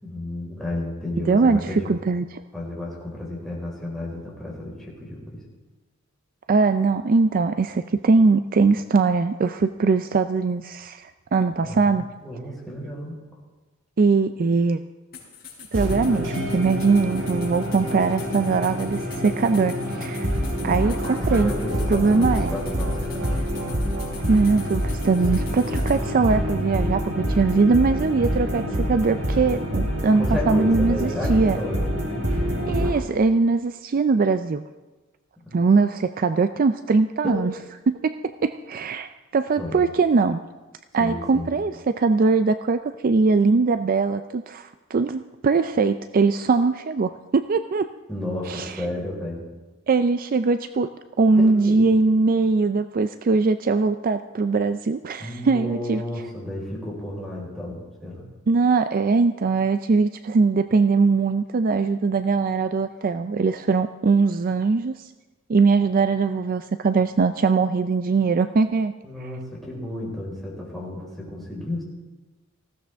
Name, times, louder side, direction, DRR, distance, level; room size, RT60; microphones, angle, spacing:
voice 1, 0.0-1.9 2.5-5.4 11.6-12.0 12.2-13.2 21.3-23.4 30.1-32.3 35.4-35.6 37.2-37.4 39.6-39.8 41.0-41.5 48.1-49.4 51.4-51.9 55.2-58.2 69.0-71.8, left 1 dB, ahead, -5 dB, 4.5 m, -32 dB
voice 2, 1.3-2.2 6.5-12.0 14.0-14.8 15.7-20.3 20.6-21.5 21.9-22.5 24.3-31.6 32.7-34.6 35.5-37.5 37.9-40.4 40.9-47.9 48.5-48.7 49.9-50.9 51.2-56.0 58.5-65.1 65.5-68.9 69.2-69.3, right 4 dB, 45° right, 10 dB, 0.4 m, -21 dB
sound 1, 15.1-26.0, left 7 dB, 45° left, 5.0 m, -44 dB
Overlook (uplifting ambient loop), 15.7-32.9, equal, 85° right, 3.4 m, -26 dB
19.0 x 16.0 x 3.5 m, 1.2 s
head